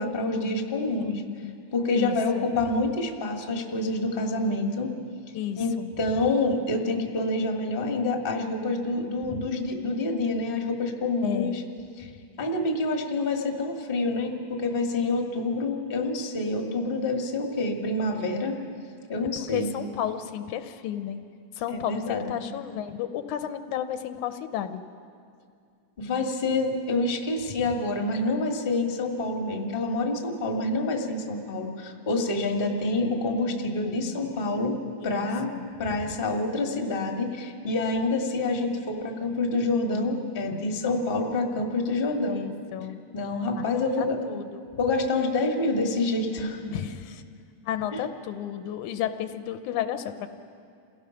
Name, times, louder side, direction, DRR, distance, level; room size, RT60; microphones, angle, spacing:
voice 1, 0.0-1.2 1.7-4.9 5.6-5.7 6.0-11.6 12.0-12.1 12.4-18.6 19.1-19.7 21.7-22.3 26.0-34.8 35.0-35.5 35.8-42.4 43.1-44.2 44.8-46.8 47.9-48.0, left 2 dB, 25° left, 2 dB, 1.2 m, -27 dB
voice 2, 1.0-1.6 1.9-2.5 5.3-5.9 9.3-9.4 11.2-11.6 19.4-21.2 21.6-24.8 35.0-35.7 42.3-43.0 43.6-44.7 46.7-47.2 47.7-50.3, left 10 dB, 80° left, 9 dB, 2.1 m, -33 dB
28.0 x 17.0 x 5.8 m, 2.3 s
omnidirectional pair, 3.5 m